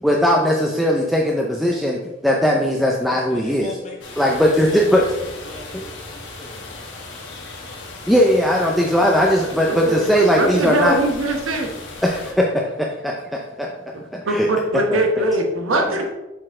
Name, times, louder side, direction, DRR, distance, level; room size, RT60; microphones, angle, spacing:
voice 1, 0.0-3.7 4.2-5.0 5.7-5.8 8.1-11.0 12.0-13.7 14.1-14.5 14.9-15.2, equal, ahead, -1 dB, 0.4 m, -19 dB
voice 2, 3.3-7.0, left 2 dB, 35° left, -1 dB, 1.3 m, -39 dB
sound 1, 4.0-12.3, left 3 dB, 60° left, 1.3 m, -37 dB
voice 3, 9.6-11.7 14.3-16.1, right 1 dB, 80° right, 3 dB, 1.0 m, -21 dB
6.5 x 4.3 x 3.6 m, 1.0 s
head